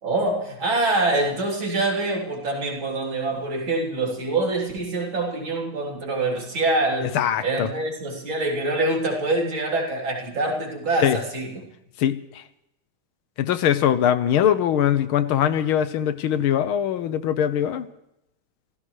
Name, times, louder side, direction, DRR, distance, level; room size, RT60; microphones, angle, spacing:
voice 1, 0.0-7.1 7.4-11.7, right 2 dB, 60° right, -1 dB, 4.2 m, -25 dB
voice 2, 7.1-7.7 11.0-11.2 12.0-12.4 13.4-17.9, left 10 dB, 75° left, 12 dB, 1.6 m, -22 dB
28.0 x 15.5 x 3.2 m, 0.83 s
omnidirectional pair, 2.4 m